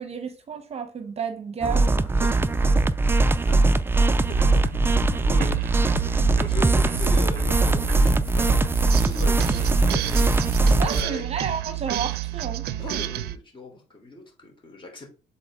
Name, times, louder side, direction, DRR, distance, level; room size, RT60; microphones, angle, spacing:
voice 1, 0.0-2.1 10.8-12.6, right 6 dB, 40° right, 0.9 m, -31 dB
sound 1, 1.6-11.0, right 2 dB, 15° right, 0.4 m, -21 dB
sound 2, 4.2-13.4, right 14 dB, 70° right, 0.5 m, -31 dB
voice 2, 4.8-11.3 12.8-15.1, left 2 dB, 30° left, 3.2 m, -39 dB
7.7 x 4.3 x 3.6 m
cardioid pair, 110°, 17 cm